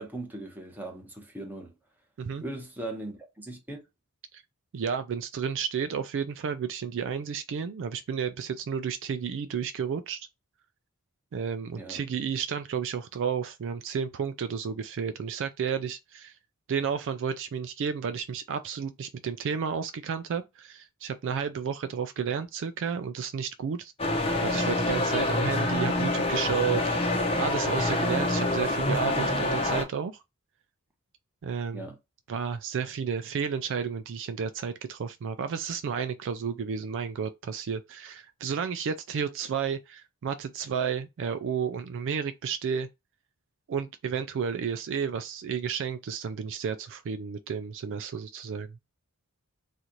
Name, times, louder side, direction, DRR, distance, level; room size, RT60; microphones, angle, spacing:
voice 1, 0.0-1.7 2.4-3.8 11.8-12.0 31.7-32.0, right 2 dB, 10° right, 1.0 m, -39 dB
voice 2, 4.7-10.3 11.3-16.4 16.7-23.9 24.4-27.1 27.4-30.2 31.4-31.9 32.3-42.9 43.7-48.7, right 7 dB, 60° right, 0.3 m, -32 dB
sound 1, 24.0-29.8, left 2 dB, 25° left, 0.8 m, -26 dB
4.1 x 2.5 x 3.0 m
head